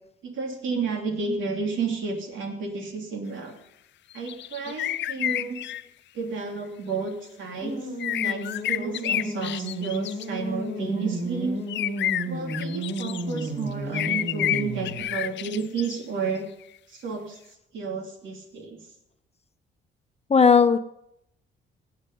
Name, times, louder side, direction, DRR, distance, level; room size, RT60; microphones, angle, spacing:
voice 1, 0.2-3.5 4.1-5.6 6.1-7.9 8.1-8.4 8.7-11.6 12.2-16.5 16.9-17.4 17.7-18.8, right 4 dB, 75° right, 3 dB, 3.0 m, -31 dB
sound 1, 4.1-5.8 8.0-10.2 11.7-13.5 13.9-15.9, left 13 dB, 65° left, 0.5 m, -29 dB
sound 2, 7.6-15.0, right 1 dB, 35° right, 5.6 m, -32 dB
voice 2, 20.3-20.8, left 6 dB, 30° left, 10 dB, 0.9 m, -17 dB
17.0 x 8.9 x 5.4 m, 0.78 s
cardioid pair, 90°, 20 cm